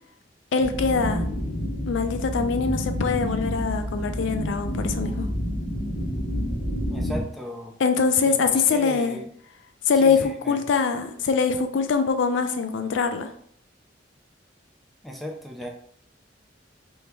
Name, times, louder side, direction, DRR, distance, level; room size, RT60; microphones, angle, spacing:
voice 1, 0.5-1.2 1.9-5.3 7.8-9.2 9.9-13.3, left 5 dB, 75° left, 7 dB, 0.4 m, -23 dB
sound 1, 0.6-7.2, equal, 45° left, 1.0 m, -28 dB
voice 2, 6.9-7.7 8.2-9.3 10.0-10.6 15.0-15.7, equal, ahead, 0 dB, 0.5 m, -36 dB
3.5 x 2.8 x 3.0 m, 0.62 s
head